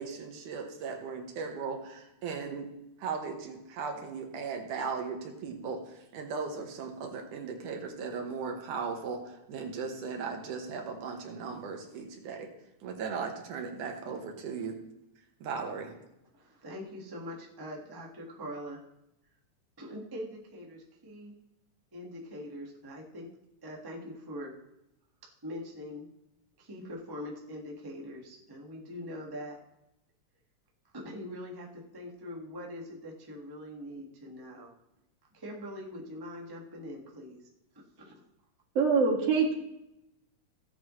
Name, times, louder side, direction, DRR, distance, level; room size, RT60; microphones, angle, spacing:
voice 1, 0.0-2.7 3.0-12.5 12.8-14.8 15.4-15.9, right 5 dB, 80° right, 3 dB, 2.8 m, -37 dB
voice 2, 16.3-18.8 19.8-21.3 21.9-23.3 23.6-24.5 25.4-26.1 26.6-29.6 30.9-34.7 35.3-37.4 38.0-38.2, equal, 15° right, -1 dB, 0.7 m, -43 dB
voice 3, 38.7-39.5, right 5 dB, 55° right, -1 dB, 2.8 m, -24 dB
16.5 x 8.1 x 3.1 m, 0.87 s
omnidirectional pair, 3.5 m